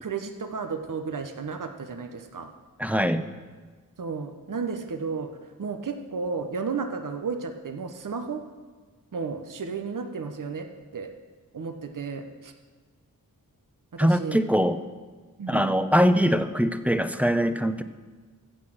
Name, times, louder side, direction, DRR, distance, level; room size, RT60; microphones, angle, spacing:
voice 1, 0.0-2.5 4.0-5.3 5.6-8.4 9.1-10.7 10.9-11.1 11.5-12.5 13.9-14.4 15.4-15.7, right 5 dB, 65° right, 7 dB, 1.0 m, -33 dB
voice 2, 2.8-3.3 14.0-14.8 15.5-17.8, equal, 5° right, 10 dB, 0.7 m, -22 dB
15.0 x 6.2 x 7.8 m, 1.4 s
wide cardioid pair, 80°, 34 cm